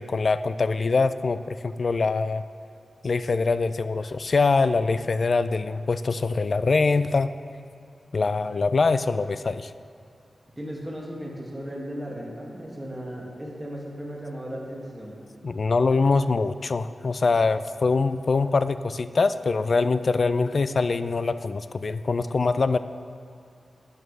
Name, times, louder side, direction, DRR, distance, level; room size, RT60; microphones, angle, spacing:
voice 1, 0.0-2.4 3.0-7.3 8.1-9.7 15.4-22.8, left 4 dB, 55° left, 13 dB, 0.3 m, -23 dB
voice 2, 10.6-15.2, equal, 15° right, -3 dB, 2.1 m, -36 dB
12.0 x 9.6 x 3.3 m, 2.5 s
wide cardioid pair, 80°, 0 cm